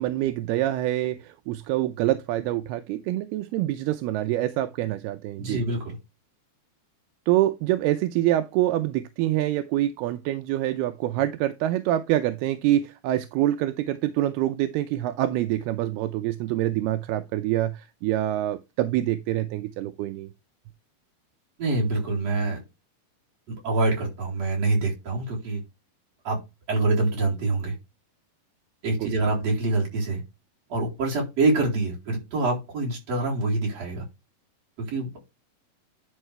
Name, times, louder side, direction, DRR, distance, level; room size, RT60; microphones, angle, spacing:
voice 1, 0.0-5.6 7.3-20.3 29.0-29.1, right 14 dB, 80° right, 2.5 m, -26 dB
voice 2, 5.4-6.0 21.6-22.6 23.5-25.6 26.2-26.4 26.7-27.7 28.8-30.2 30.7-34.0 34.8-35.2, right 2 dB, 40° right, 4.6 m, -25 dB
11.0 x 5.5 x 3.3 m
omnidirectional pair, 4.8 m